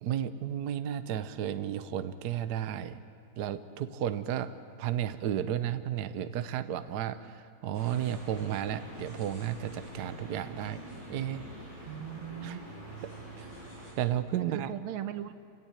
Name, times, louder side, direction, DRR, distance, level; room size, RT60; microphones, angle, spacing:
voice 1, 0.0-3.0 3.4-10.8 11.1-11.5 12.4-12.6 13.0-13.5 14.0-14.7, right 10 dB, 60° right, 11 dB, 1.2 m, -33 dB
sound 1, 7.7-13.9, right 1 dB, 35° right, 8.3 m, -46 dB
voice 2, 11.9-12.7 14.4-15.3, right 11 dB, 80° right, 11 dB, 1.7 m, -38 dB
27.0 x 17.0 x 9.0 m, 2.3 s
omnidirectional pair, 2.3 m